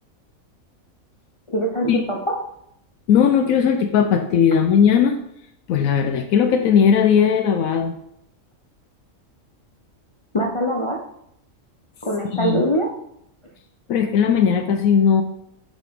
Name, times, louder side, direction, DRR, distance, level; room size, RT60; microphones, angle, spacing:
voice 1, 1.5-2.2 10.3-11.0 12.0-12.9, equal, 40° left, -1 dB, 0.4 m, -22 dB
voice 2, 3.1-5.2 5.7-8.0 12.3-12.6 13.9-15.2, left 7 dB, 85° left, 5 dB, 1.0 m, -17 dB
6.1 x 5.5 x 3.5 m, 0.76 s
omnidirectional pair, 1.4 m